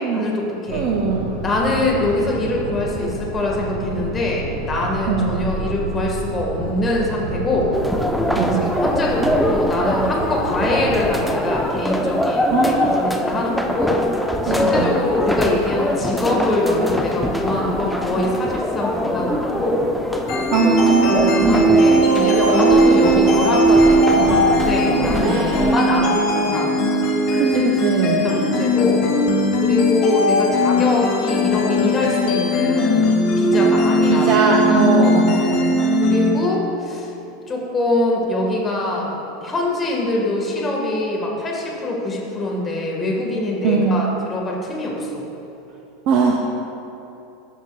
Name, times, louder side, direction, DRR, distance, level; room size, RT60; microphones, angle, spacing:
voice 1, 0.0-0.9 1.4-7.7 8.6-14.0 14.4-19.8 21.1-26.8 27.6-27.9 28.2-29.0 29.6-33.0 33.4-34.5 34.9-35.2 36.0-37.1 37.5-39.1 39.4-45.3, left 2 dB, 25° left, -2 dB, 1.5 m, -23 dB
voice 2, 0.7-1.3 5.1-5.4 8.4-8.8 12.5-13.0 14.5-15.0 20.2-21.7 25.2-25.8 27.3-28.3 34.1-35.8 43.6-44.0 46.1-46.4, right 5 dB, 50° right, 1 dB, 0.6 m, -20 dB
sound 1, 0.7-11.1, right 2 dB, 70° right, 1.2 m, -30 dB
sound 2, 7.7-25.8, left 1 dB, ahead, 0.6 m, -23 dB
sound 3, 20.3-36.3, equal, 55° left, 1.5 m, -18 dB
14.0 x 5.9 x 2.3 m, 2.9 s
hypercardioid pair, 85°, 0 cm